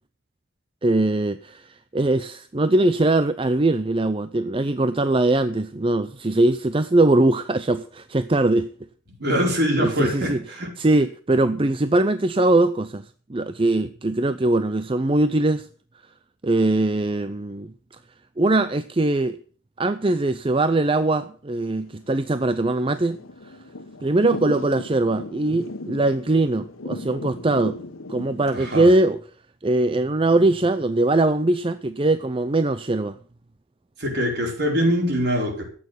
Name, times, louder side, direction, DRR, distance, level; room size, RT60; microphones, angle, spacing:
voice 1, 0.8-8.7 9.8-10.4 10.8-15.7 16.4-17.7 18.4-19.4 19.8-23.2 24.0-27.8 28.1-29.2 29.6-33.2, right 2 dB, 25° right, 0.5 m, -21 dB
voice 2, 9.2-10.7 28.5-28.9 34.0-35.6, equal, 55° right, 5.1 m, -23 dB
Thunder / Rain, 21.7-28.8, left 2 dB, 90° left, 1.3 m, -36 dB
13.5 x 8.7 x 8.1 m
head